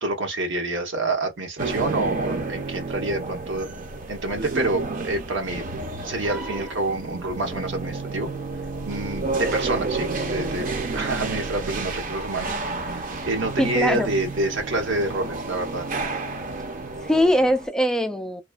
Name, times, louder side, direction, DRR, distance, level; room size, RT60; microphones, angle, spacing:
voice 1, 0.0-3.7 4.1-5.6 6.0-8.3 8.8-10.7 10.9-15.8, right 2 dB, 85° right, 1.1 m, -27 dB
sound 1, 1.6-17.7, right 3 dB, 45° right, 0.6 m, -31 dB
voice 2, 13.6-14.1 17.0-18.4, equal, 5° left, 0.3 m, -21 dB
3.0 x 2.2 x 2.4 m
head